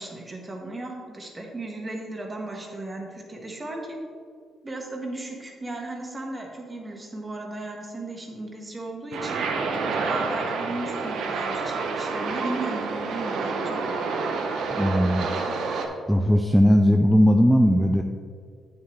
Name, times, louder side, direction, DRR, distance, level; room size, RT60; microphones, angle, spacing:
voice 1, 0.0-4.0 4.6-9.4 10.0-13.8, right 2 dB, 25° right, 1 dB, 1.5 m, -36 dB
sound 1, 9.1-15.9, right 4 dB, 75° right, 0.9 m, -28 dB
voice 2, 14.7-15.3 16.1-18.0, equal, ahead, 3 dB, 0.5 m, -18 dB
8.6 x 7.1 x 3.3 m, 2.1 s
cardioid pair, 90°, 0 cm